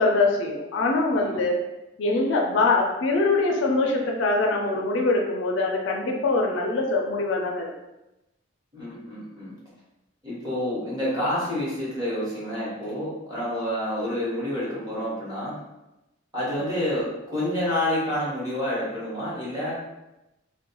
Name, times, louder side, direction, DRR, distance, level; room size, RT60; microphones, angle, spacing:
voice 1, 0.0-1.6 2.0-7.7, left 3 dB, 70° left, 1 dB, 0.4 m, -23 dB
voice 2, 8.7-9.5 10.2-15.6 16.3-19.9, left 1 dB, 20° right, -9 dB, 1.0 m, -28 dB
2.2 x 2.1 x 2.9 m, 0.96 s
head